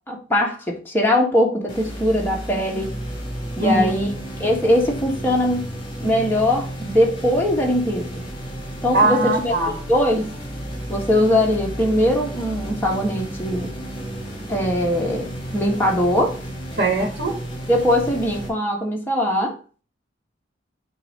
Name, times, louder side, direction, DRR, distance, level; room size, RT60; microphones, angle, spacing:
voice 1, 0.1-2.9 3.6-4.1 4.4-5.6 6.0-8.1 8.8-9.5 9.9-10.3 10.9-13.7 14.5-16.4 17.7-19.6, left 1 dB, 10° left, 1.5 m, -21 dB
sound 1, 1.7-18.5, equal, 30° left, 2.7 m, -32 dB
voice 2, 3.6-3.9 8.9-9.7 16.8-17.3, right 2 dB, 65° right, 1.6 m, -20 dB
8.0 x 2.8 x 5.4 m
head